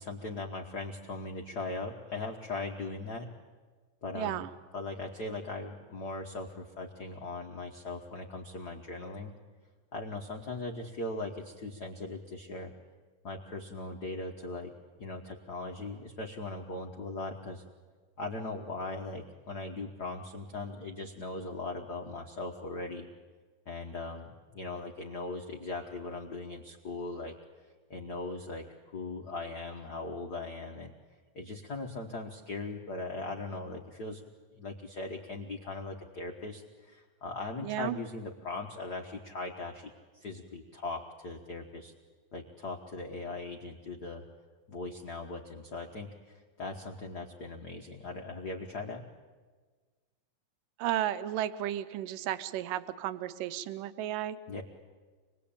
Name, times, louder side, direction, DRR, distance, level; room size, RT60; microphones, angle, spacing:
voice 1, 0.0-3.3 4.0-4.4 4.7-9.3 9.9-12.7 13.2-14.7 15.0-17.6 18.2-23.1 23.7-27.4 27.9-28.7 28.9-30.9 31.3-34.2 34.5-41.9 42.3-44.2 44.7-49.0 54.5-54.6, left 3 dB, 75° left, 1 dB, 0.9 m, -39 dB
voice 2, 4.2-4.5 37.6-38.0 50.8-54.4, right 12 dB, 80° right, 11 dB, 2.5 m, -33 dB
25.5 x 20.5 x 8.7 m, 1.4 s
omnidirectional pair, 3.9 m